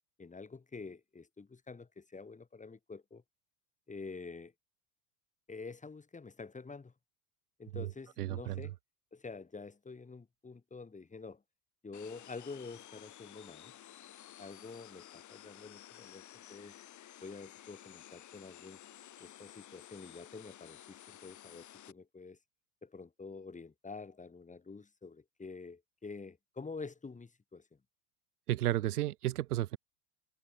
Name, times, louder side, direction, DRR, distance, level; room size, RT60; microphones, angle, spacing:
voice 1, 0.2-3.2 3.9-4.5 5.5-6.9 7.6-8.7 9.1-11.4 11.8-13.7 14.4-16.8 17.2-18.8 19.2-22.4 22.8-27.8, left 4 dB, 15° left, 4.9 m, -48 dB
voice 2, 8.2-8.6 28.5-29.8, right 14 dB, 85° right, 0.7 m, -32 dB
sound 1, 11.9-21.9, left 12 dB, 40° left, 4.2 m, -54 dB
hypercardioid pair, 80°, 44 cm